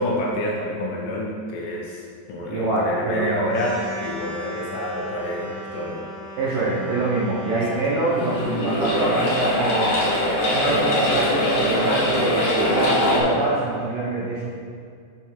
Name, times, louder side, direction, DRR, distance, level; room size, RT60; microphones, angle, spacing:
voice 1, 0.0-6.1 7.5-7.8 13.2-13.4, left 1 dB, 75° left, -2 dB, 3.0 m, -28 dB
voice 2, 2.5-3.5 6.4-10.0 10.5-14.5, right 2 dB, 70° right, -7 dB, 2.2 m, -24 dB
sound 1, 3.5-9.3, equal, 45° right, 1.4 m, -37 dB
sound 2, 8.1-13.2, left 1 dB, 60° left, 2.5 m, -22 dB
7.9 x 4.5 x 4.5 m, 2.2 s
omnidirectional pair, 5.1 m